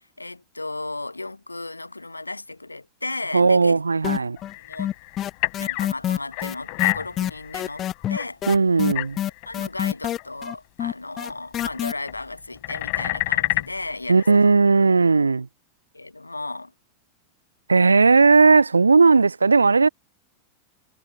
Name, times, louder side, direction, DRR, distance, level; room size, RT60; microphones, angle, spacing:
voice 1, 0.0-3.8 4.6-4.9 5.6-8.4 9.4-14.4 15.9-16.7, left 2 dB, 85° left, 1.6 m, -35 dB
voice 2, 3.3-4.4 8.5-9.2 14.1-15.5 17.7-19.9, right 4 dB, 80° right, 0.5 m, -16 dB
sound 1, 4.0-4.5 4.8-11.9, left 11 dB, 30° left, 0.7 m, -26 dB
sound 2, 4.4-5.9 6.3-8.6 8.9-9.5 9.8-9.9 10.2-10.3 11.6-11.8 12.1-13.7 14.2-14.5, left 30 dB, 45° left, 4.4 m, -29 dB
figure-of-eight pair, 90°, 0 cm